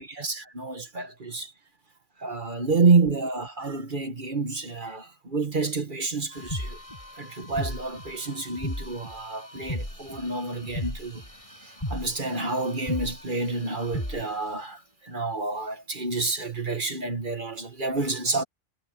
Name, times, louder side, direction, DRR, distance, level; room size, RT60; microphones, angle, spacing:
voice 1, 0.0-1.5 2.2-6.8 7.2-11.2 11.9-18.4, right 3 dB, 45° right, 1.6 m, -28 dB
sound 1, 6.3-14.5, left 1 dB, 30° left, 7.7 m, -37 dB
omnidirectional pair, 1.2 m